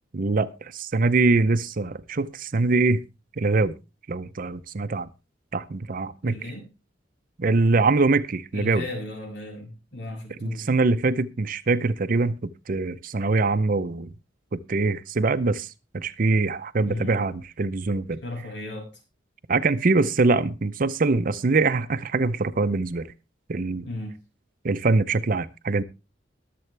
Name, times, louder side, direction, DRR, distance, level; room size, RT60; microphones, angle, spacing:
voice 1, 0.1-3.0 3.4-3.7 4.1-5.1 5.5-6.3 7.4-8.8 10.4-12.3 12.7-14.1 14.5-18.2 19.5-23.1 23.5-23.8 24.6-25.8, right 3 dB, 50° right, 0.6 m, -23 dB
voice 2, 6.2-6.7 8.5-10.7 16.9-17.2 18.2-19.0 23.8-24.1, left 1 dB, 65° left, 6.5 m, -35 dB
21.5 x 7.7 x 3.3 m
head